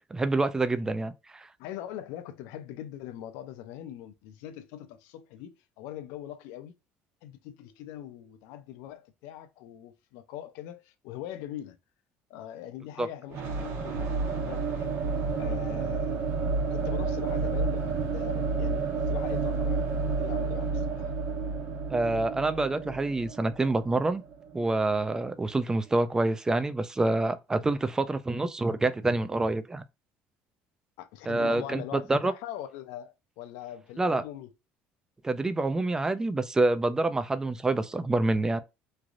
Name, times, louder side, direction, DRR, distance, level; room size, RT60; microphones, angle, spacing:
voice 1, 0.1-1.5 13.0-13.1 21.9-24.2 24.5-29.8 31.3-32.3 34.0-34.2 35.2-38.6, right 2 dB, 15° right, 0.3 m, -27 dB
voice 2, 1.6-6.7 7.2-11.8 12.3-14.9 15.4-21.1 31.0-34.5, left 11 dB, 85° left, 0.5 m, -42 dB
sound 1, 13.3-25.1, right 4 dB, 60° right, 1.0 m, -30 dB
3.2 x 2.5 x 2.5 m
cardioid pair, 125°, 5 cm